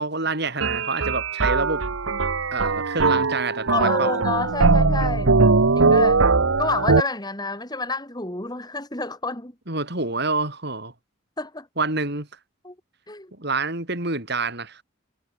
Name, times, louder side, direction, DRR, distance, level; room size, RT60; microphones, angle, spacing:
voice 1, 0.0-1.8 2.5-4.1 9.7-10.9 11.8-12.3 13.4-14.8, right 3 dB, 55° right, 5.7 m, -27 dB
sound 1, 0.6-7.0, right 4 dB, 85° right, 1.1 m, -20 dB
voice 2, 3.7-5.3 5.8-6.2 6.6-9.5 11.4-11.7 12.6-12.7 13.1-13.3, left 3 dB, 20° left, 4.1 m, -28 dB
head